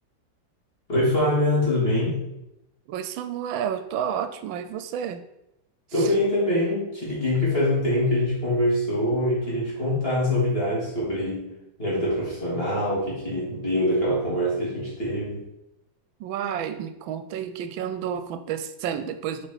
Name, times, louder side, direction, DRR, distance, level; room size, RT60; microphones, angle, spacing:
voice 1, 0.9-2.2 5.9-11.5 11.8-15.5, left 1 dB, 30° left, -7 dB, 3.3 m, -24 dB
voice 2, 2.9-5.2 6.0-6.1 16.2-19.5, right 8 dB, 85° right, 10 dB, 1.4 m, -30 dB
8.6 x 5.3 x 4.1 m, 0.86 s
omnidirectional pair, 2.1 m